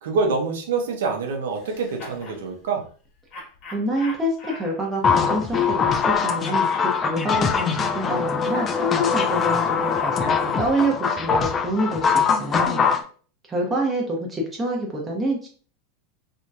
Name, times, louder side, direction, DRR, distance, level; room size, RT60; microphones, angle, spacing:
voice 1, 0.0-2.8, right 4 dB, 80° right, 2 dB, 0.8 m, -25 dB
sound 1, 1.5-2.4 3.3-6.2 6.4-10.4, left 2 dB, 45° left, 1.2 m, -42 dB
voice 2, 3.7-12.8 13.5-15.5, right 1 dB, 20° right, -1 dB, 0.8 m, -27 dB
sound 2, 5.0-13.0, left 6 dB, 30° left, 0.4 m, -22 dB
2.9 x 2.7 x 2.3 m, 0.41 s
hypercardioid pair, 110°, 0 cm